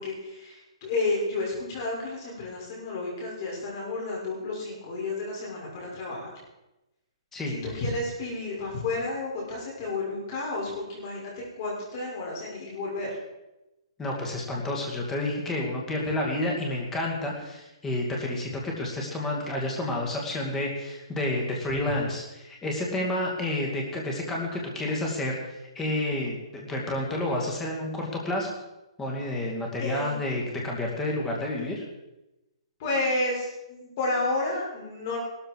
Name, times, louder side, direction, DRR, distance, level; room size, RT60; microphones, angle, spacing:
voice 1, 0.0-6.3 7.5-13.2 29.8-30.2 32.8-35.2, left 2 dB, 30° left, -4 dB, 6.4 m, -31 dB
voice 2, 14.0-28.5 29.0-31.8, left 1 dB, 10° left, -1 dB, 2.4 m, -30 dB
16.5 x 13.0 x 4.8 m, 0.97 s
hypercardioid pair, 170°, 3 cm